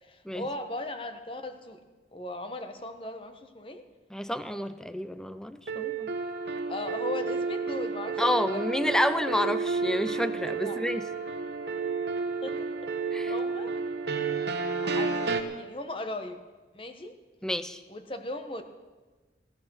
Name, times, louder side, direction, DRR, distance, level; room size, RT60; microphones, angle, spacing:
voice 1, 0.0-1.8 2.1-3.8 6.7-8.6 10.6-10.8 12.4-12.6 13.3-13.7 14.8-15.3 15.6-16.4 16.7-17.1 17.9-18.6, left 2 dB, 30° left, 7 dB, 1.2 m, -37 dB
voice 2, 4.1-6.1 8.2-11.1 13.1-13.3 17.4-17.8, left 1 dB, 5° left, 12 dB, 0.5 m, -29 dB
sound 1, 5.7-15.4, right 4 dB, 70° right, 1.2 m, -31 dB
17.0 x 12.0 x 6.4 m, 1.3 s
head